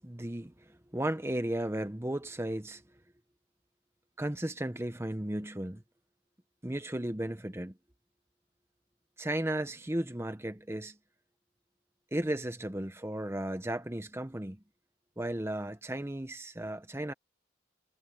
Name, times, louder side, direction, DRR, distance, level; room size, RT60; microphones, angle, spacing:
voice 1, 0.0-2.8 4.2-5.8 6.6-7.7 9.2-11.0 12.1-14.6 15.2-17.1, right 1 dB, 15° right, 0.8 m, -35 dB
head